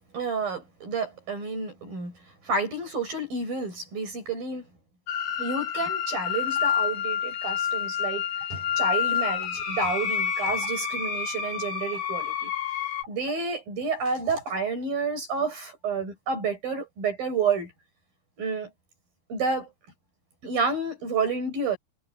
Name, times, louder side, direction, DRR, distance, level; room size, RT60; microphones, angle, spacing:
voice 1, 0.1-2.1 2.4-4.6 5.4-12.5 13.0-17.7 18.4-18.7 19.3-19.7 20.4-21.8, right 4 dB, 45° right, 8.4 m, -30 dB
sound 1, 5.1-13.0, left 8 dB, 60° left, 5.2 m, -28 dB
omnidirectional pair, 5.6 m